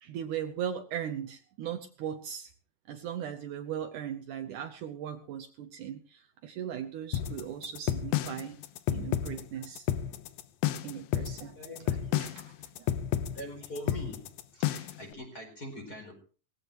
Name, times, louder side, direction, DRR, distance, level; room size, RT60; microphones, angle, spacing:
voice 1, 0.0-2.5 2.9-8.6 8.9-9.9 10.8-11.6 12.1-12.9, right 9 dB, 70° right, 7 dB, 2.2 m, -38 dB
sound 1, 7.1-15.1, left 11 dB, 85° left, 2.7 m, -31 dB
voice 2, 11.5-12.0 13.3-14.3 14.5-16.1, equal, 25° left, 3 dB, 4.8 m, -42 dB
19.0 x 16.0 x 3.1 m, 0.39 s
omnidirectional pair, 4.1 m